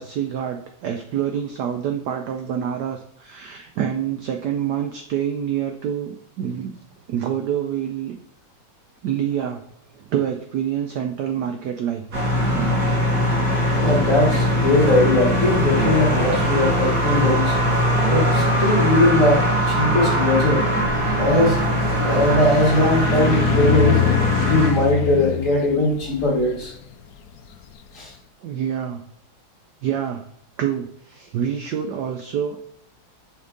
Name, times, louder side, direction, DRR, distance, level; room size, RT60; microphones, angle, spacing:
voice 1, 0.0-6.7 7.1-8.2 9.0-9.6 9.9-12.3 28.4-29.0 29.8-30.2 30.6-32.6, right 9 dB, 75° right, 6 dB, 0.9 m, -27 dB
sound 1, 12.1-24.7, equal, 50° right, 2.1 m, -21 dB
voice 2, 13.7-17.6 18.1-20.7 21.2-21.6 22.0-24.1 24.4-26.7 27.9-28.1, left 1 dB, 40° left, -2 dB, 1.8 m, -20 dB
sound 2, 20.7-27.9, left 11 dB, 75° left, 0.9 m, -26 dB
5.6 x 4.3 x 3.8 m, 0.71 s
omnidirectional pair, 2.3 m